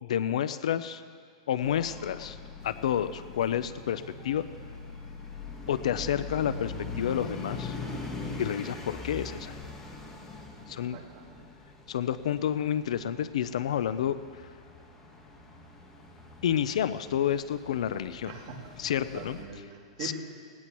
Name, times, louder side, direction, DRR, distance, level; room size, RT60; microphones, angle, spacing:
voice 1, 0.0-1.0 1.5-2.4 2.6-4.4 5.7-7.8 8.4-9.6 10.7-11.0 11.9-14.2 16.4-18.3 18.8-19.4 20.0-20.1, left 10 dB, 80° left, 13 dB, 0.5 m, -29 dB
sound 1, 1.6-19.4, left 3 dB, 15° left, 1.4 m, -42 dB
voice 2, 10.7-11.4 18.2-18.7 19.1-20.1, right 5 dB, 40° right, -5 dB, 3.0 m, -43 dB
18.5 x 18.0 x 3.1 m, 2.1 s
supercardioid pair, 160°, 3 cm